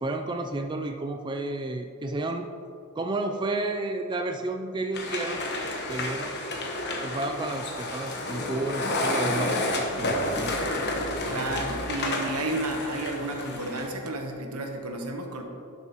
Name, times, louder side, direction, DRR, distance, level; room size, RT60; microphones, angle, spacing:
voice 1, 0.0-2.5 3.0-5.4 5.9-6.3 7.0-10.8, right 2 dB, 20° right, 5 dB, 0.3 m, -31 dB
sound 1, 4.9-13.9, left 1 dB, 50° left, 1.1 m, -30 dB
voice 2, 11.3-15.4, right 2 dB, 80° right, 3 dB, 1.1 m, -32 dB
11.5 x 6.7 x 3.0 m, 2.6 s
head